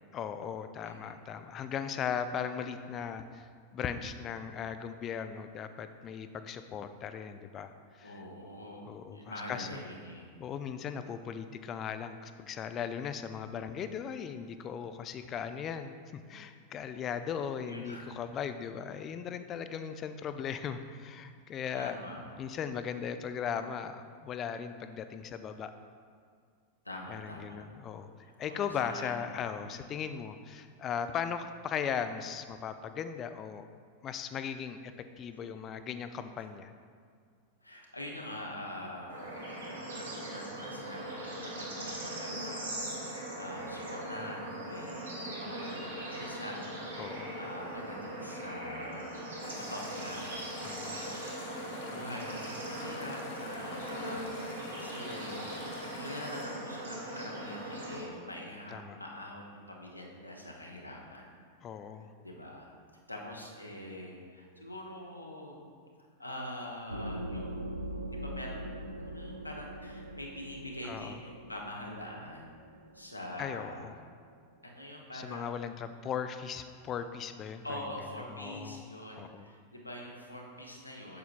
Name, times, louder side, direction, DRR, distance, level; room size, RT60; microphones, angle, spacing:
voice 1, 0.1-8.2 8.9-9.8 10.4-22.0 22.4-25.7 27.1-28.1 28.4-33.7 34.0-34.8 35.2-36.7 47.0-47.4 50.6-51.0 58.7-59.0 61.6-62.1 70.8-71.2 73.4-73.9 75.1-77.8 78.3-78.8 79.2-79.5, left 7 dB, 30° left, 10 dB, 0.3 m, -38 dB
voice 2, 0.8-1.2 8.0-10.3 17.6-18.1 21.8-22.2 26.8-27.6 28.2-29.9 35.5-35.6 37.6-39.3 39.6-42.8 43.1-49.1 49.4-55.5 56.0-61.3 62.2-62.7 63.1-65.6 66.2-67.8 68.1-72.5 72.9-73.9 74.6-75.7 77.6-81.2, left 1 dB, 85° left, -1 dB, 1.0 m, -44 dB
Bird / Insect / Frog, 39.1-58.0, right 1 dB, 70° right, 1.4 m, -40 dB
sound 1, 49.4-56.5, left 3 dB, 55° left, 1.2 m, -47 dB
sound 2, 66.9-74.3, right 1 dB, 85° right, 0.4 m, -42 dB
8.1 x 6.9 x 2.5 m, 2.1 s
figure-of-eight pair, 90°, 0 cm